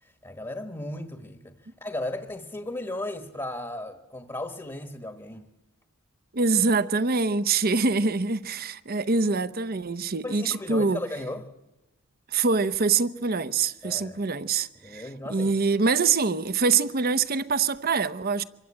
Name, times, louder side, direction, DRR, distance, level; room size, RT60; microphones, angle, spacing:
voice 1, 0.0-5.5 10.2-11.5 13.8-14.2 14.8-15.5, left 1 dB, 15° left, 1.3 m, -36 dB
voice 2, 6.3-11.0 12.3-15.0 15.3-18.4, right 4 dB, 45° right, 0.8 m, -24 dB
25.5 x 23.0 x 8.6 m
head